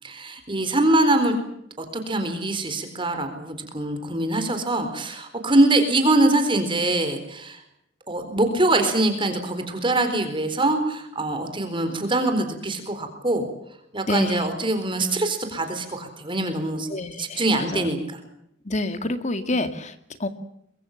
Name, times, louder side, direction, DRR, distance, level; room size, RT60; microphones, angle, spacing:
voice 1, 0.0-1.4 1.8-7.6 8.1-13.5 13.9-16.9 17.2-18.2, right 2 dB, 25° right, 7 dB, 4.1 m, -23 dB
voice 2, 14.1-14.5 16.9-17.9 18.6-20.3, left 2 dB, 35° left, 10 dB, 2.1 m, -28 dB
24.5 x 22.5 x 7.3 m, 0.76 s
head